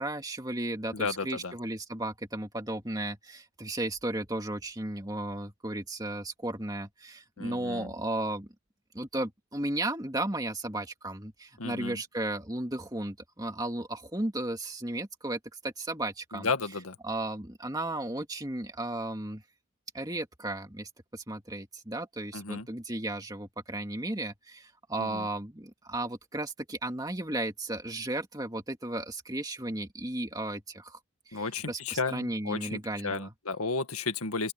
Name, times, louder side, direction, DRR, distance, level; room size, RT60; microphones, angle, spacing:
voice 1, 0.0-8.5 8.9-16.5 17.0-19.4 19.9-31.0 31.3-33.3, right 1 dB, 15° right, 2.2 m, -35 dB
voice 2, 0.9-1.5 7.4-7.9 11.6-12.0 16.3-17.0 22.3-22.7 25.0-25.3 31.3-34.5, left 4 dB, 85° left, 1.9 m, -33 dB
open air
head